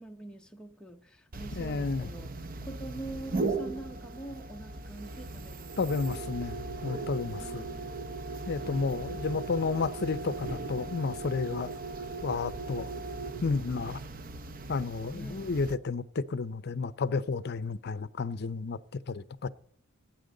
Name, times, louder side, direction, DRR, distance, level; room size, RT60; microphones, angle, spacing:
voice 1, 0.0-5.8 7.3-7.9 15.1-15.5, right 2 dB, 5° left, 0.8 m, -45 dB
sound 1, 1.3-15.8, right 3 dB, 45° right, 0.7 m, -38 dB
voice 2, 1.6-2.1 5.8-7.7 8.5-11.7 12.2-12.9 13.4-14.0 14.7-18.8 19.1-19.5, left 4 dB, 55° left, 0.6 m, -32 dB
18.0 x 9.2 x 3.9 m
head